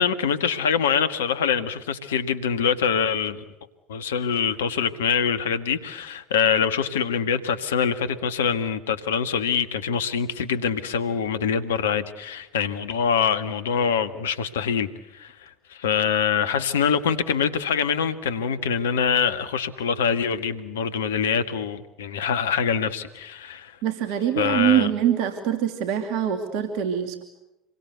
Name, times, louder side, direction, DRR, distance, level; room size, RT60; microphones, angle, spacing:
voice 1, 0.0-3.4 3.9-23.7 24.4-24.9, left 7 dB, 80° left, 11 dB, 1.7 m, -24 dB
voice 2, 23.8-27.2, right 10 dB, 65° right, 7 dB, 2.7 m, -24 dB
27.0 x 22.5 x 8.2 m, 0.92 s
hypercardioid pair, 70°, 0 cm